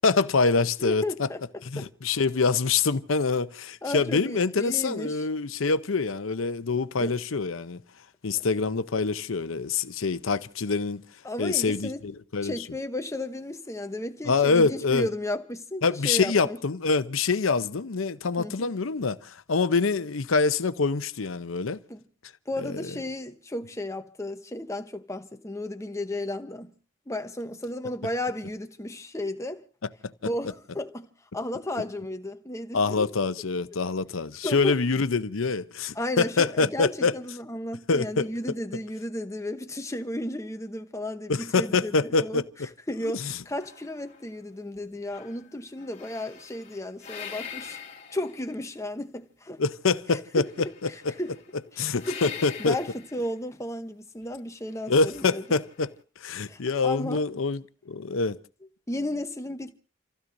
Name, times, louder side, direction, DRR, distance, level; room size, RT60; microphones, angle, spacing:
voice 1, 0.0-1.0 1.6-7.8 8.2-11.0 11.4-12.5 14.3-15.1 15.8-21.8 30.0-30.1 32.7-37.1 37.9-38.3 41.3-42.4 43.1-43.4 49.6-50.5 50.8-51.1 51.8-52.8 54.9-58.4, left 4 dB, 85° left, 0.8 m, -25 dB
voice 2, 0.8-1.4 1.8-1.9 3.8-5.2 7.0-7.2 11.2-12.0 12.4-16.6 18.4-18.7 21.9-22.0 22.5-26.7 27.1-29.6 30.2-33.1 34.4-34.8 35.9-42.4 42.9-47.8 48.1-49.6 50.4-51.3 51.7-52.3 52.6-55.4 56.5-57.2 58.9-59.7, left 1 dB, 15° left, 0.9 m, -34 dB
sound 1, 43.6-44.8 45.1-48.8 50.4-51.5 52.0-53.3 54.8-55.9, left 7 dB, 35° left, 2.4 m, -43 dB
29.0 x 16.0 x 2.7 m
head